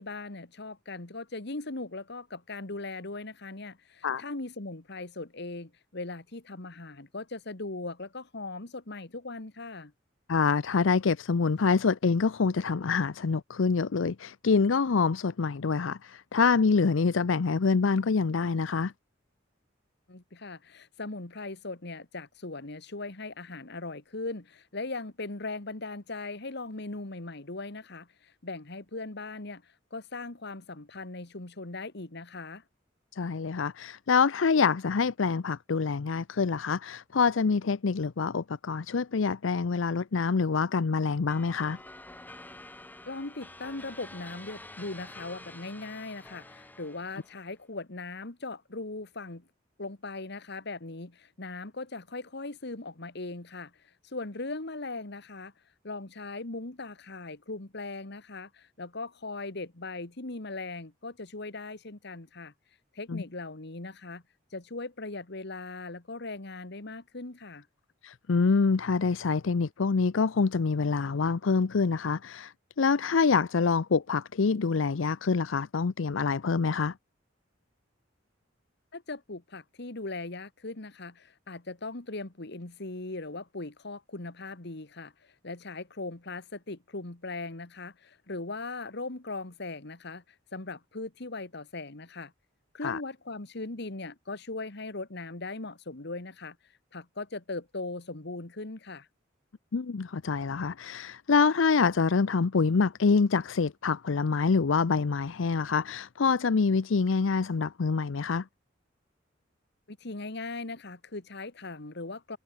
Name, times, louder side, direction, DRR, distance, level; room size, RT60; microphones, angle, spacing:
voice 1, 0.0-9.9 20.1-32.6 43.1-49.5 49.8-55.5 55.8-62.5 62.9-64.2 64.5-67.7 78.9-92.3 92.7-96.6 96.9-99.1 109.9-112.4, left 3 dB, 60° left, 1.9 m, -39 dB
voice 2, 10.3-18.9 33.1-41.8 63.1-63.2 68.0-77.0 92.8-93.0 99.7-108.5, left 5 dB, 75° left, 0.6 m, -26 dB
sound 1, 41.3-47.5, left 2 dB, 10° left, 1.7 m, -48 dB
head